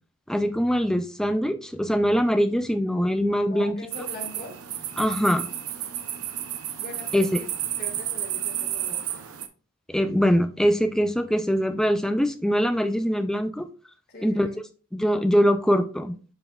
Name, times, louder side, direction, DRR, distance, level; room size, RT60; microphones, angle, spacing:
voice 1, 0.3-3.7 5.0-5.5 7.1-7.3 9.9-13.7 14.2-14.5 14.9-16.1, equal, ahead, 0.3 m, -23 dB
voice 2, 3.5-4.6 6.8-7.5 7.8-9.2 14.1-14.6, left 1 dB, 45° left, 2.0 m, -41 dB
sound 1, 3.9-9.5, right 11 dB, 80° right, 0.7 m, -32 dB
6.8 x 5.8 x 2.4 m
head